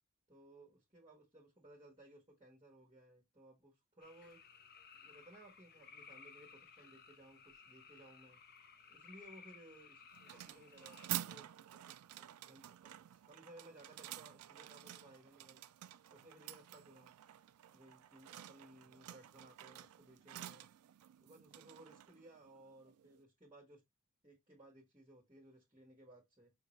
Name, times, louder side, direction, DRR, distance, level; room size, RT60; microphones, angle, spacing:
voice 1, 0.3-4.4 4.9-8.4 8.9-11.5 11.7-15.6 16.1-17.1 17.7-20.7 21.2-23.8 24.2-26.5, right 1 dB, 20° right, 1.6 m, -60 dB
sound 1, 4.0-11.1, left 6 dB, 45° left, 0.6 m, -59 dB
sound 2, 10.1-23.2, right 13 dB, 80° right, 0.4 m, -50 dB
5.9 x 2.8 x 3.1 m
head